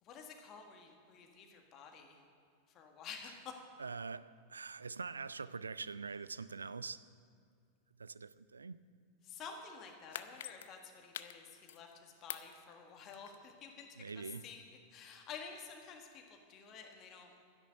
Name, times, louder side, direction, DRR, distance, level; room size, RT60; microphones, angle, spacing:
voice 1, 0.0-2.2 2.7-3.5 9.2-13.9 14.2-14.6 14.9-17.3, left 6 dB, 35° left, 3 dB, 1.7 m, -51 dB
voice 2, 3.8-7.0 8.0-8.8 14.0-14.4, right 4 dB, 75° right, 17 dB, 0.3 m, -44 dB
sound 1, 9.8-12.0 12.3-13.6 13.9-14.0, left 11 dB, 60° left, 0.5 m, -47 dB
12.5 x 10.5 x 6.5 m, 2.2 s
figure-of-eight pair, 90°, 0 cm